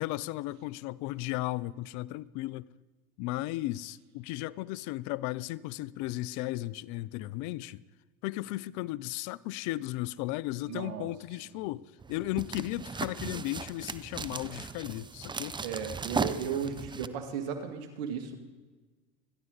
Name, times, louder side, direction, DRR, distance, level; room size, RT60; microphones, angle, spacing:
voice 1, 0.0-2.7 3.2-7.8 8.2-15.6, left 17 dB, 60° left, 0.6 m, -35 dB
voice 2, 10.7-11.1 15.6-18.4, right 7 dB, 75° right, 2.2 m, -35 dB
sound 1, 12.0-17.1, right 4 dB, 15° right, 0.6 m, -37 dB
26.0 x 11.0 x 4.0 m
hypercardioid pair, 90°, 34 cm